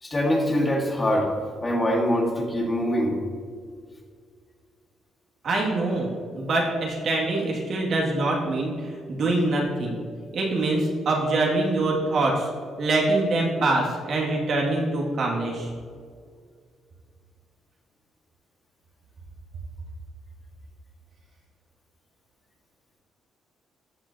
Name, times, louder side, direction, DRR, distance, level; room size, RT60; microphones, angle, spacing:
voice 1, 0.0-1.3 1.6-3.2, equal, 25° left, 0 dB, 1.8 m, -23 dB
voice 2, 5.4-10.0 10.3-12.5 12.8-15.7, right 2 dB, 60° right, -2 dB, 2.3 m, -24 dB
13.5 x 6.1 x 2.9 m, 2.1 s
cardioid pair, 90°, 0 cm